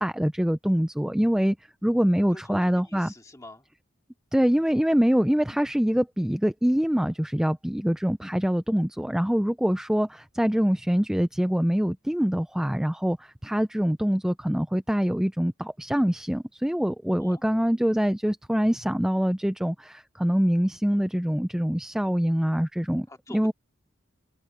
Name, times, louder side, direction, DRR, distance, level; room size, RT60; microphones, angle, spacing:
voice 1, 0.0-1.6 1.8-3.1 4.3-23.1 23.3-23.5, equal, 5° right, 0.3 m, -24 dB
voice 2, 2.3-3.7 17.2-17.4 23.1-23.5, left 1 dB, 15° left, 2.3 m, -45 dB
head